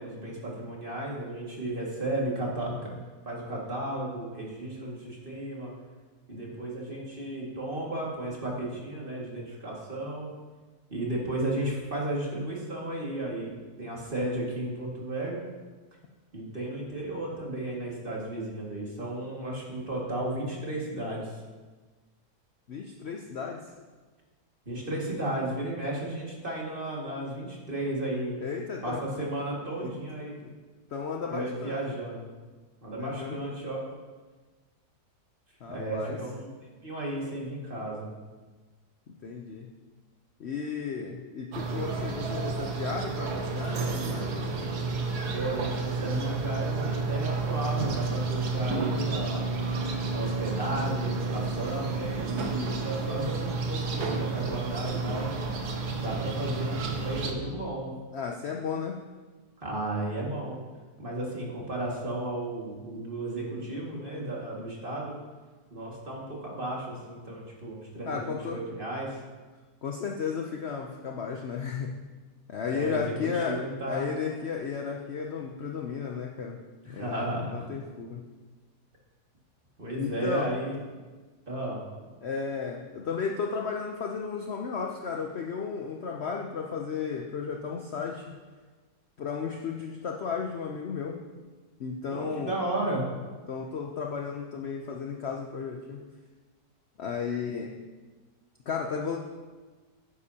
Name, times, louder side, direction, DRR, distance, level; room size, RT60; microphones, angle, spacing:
voice 1, 0.0-2.8 3.3-5.7 6.3-10.3 10.9-15.4 16.3-21.4 24.7-28.4 28.8-30.3 31.3-32.3 32.8-33.8 35.7-36.5 36.8-38.1 45.3-49.5 50.1-55.3 56.0-57.9 59.6-60.6 61.0-65.2 65.7-69.2 71.1-71.2 72.7-74.1 76.8-77.7 79.8-80.8 81.5-81.8 92.1-93.0, right 1 dB, 35° right, -4 dB, 2.2 m, -34 dB
voice 2, 22.7-23.6 28.4-29.0 29.8-29.9 30.4-30.5 30.9-31.8 33.0-33.4 35.6-36.2 39.2-39.7 40.4-44.6 58.1-59.0 68.1-68.6 69.8-71.9 72.5-76.6 76.8-78.2 79.9-80.5 82.2-88.3 89.2-91.2 91.8-92.6 93.5-96.0 97.0-97.7 98.7-99.2, left 6 dB, 55° left, 1 dB, 0.8 m, -34 dB
sound 1, 41.5-57.3, right 3 dB, 70° right, 1.5 m, -31 dB
11.5 x 9.9 x 2.9 m, 1.3 s
omnidirectional pair, 1.7 m